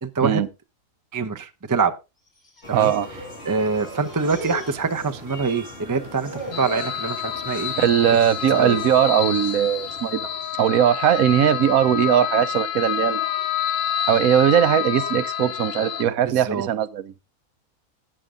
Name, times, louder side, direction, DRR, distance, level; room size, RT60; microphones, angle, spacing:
voice 1, 0.0-0.4 1.1-1.9 2.7-2.9 3.4-7.9 8.6-8.8 16.4-16.7, right 4 dB, 20° right, 0.5 m, -25 dB
sound 1, 2.3-3.4 3.6-5.5 5.8-7.0 7.4-7.8 8.1-8.3 9.1-9.5 10.1-10.5 11.3-13.5, right 1 dB, 30° left, 5.2 m, -39 dB
sound 2, 2.6-10.9, equal, 45° left, 3.3 m, -42 dB
voice 2, 2.7-3.1 7.8-10.3 10.6-13.2 14.1-17.2, right 10 dB, 80° right, 1.2 m, -19 dB
sound 3, 6.5-16.0, left 10 dB, 70° left, 1.5 m, -28 dB
11.0 x 8.9 x 3.7 m
omnidirectional pair, 1.5 m